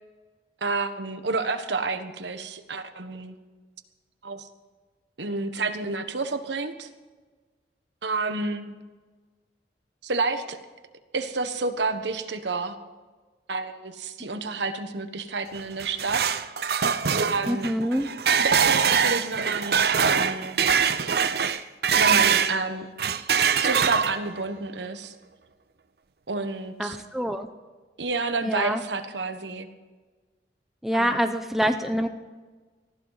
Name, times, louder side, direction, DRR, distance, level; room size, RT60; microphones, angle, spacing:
voice 1, 0.6-3.3 4.2-4.5 5.2-6.9 8.0-8.7 10.0-10.6 11.1-12.8 13.5-16.4 17.2-17.7 18.4-20.6 22.0-22.9 23.6-25.1 26.3-27.0 28.0-29.7 30.9-31.3, right 3 dB, 80° right, 9 dB, 1.3 m, -29 dB
sound 1, 15.6-22.6 23.0-24.4, right 7 dB, 60° right, 0.7 m, -23 dB
voice 2, 17.5-18.1 26.8-27.5 28.4-28.8 30.8-32.1, equal, ahead, 6 dB, 0.8 m, -25 dB
19.0 x 15.0 x 4.1 m, 1.3 s
head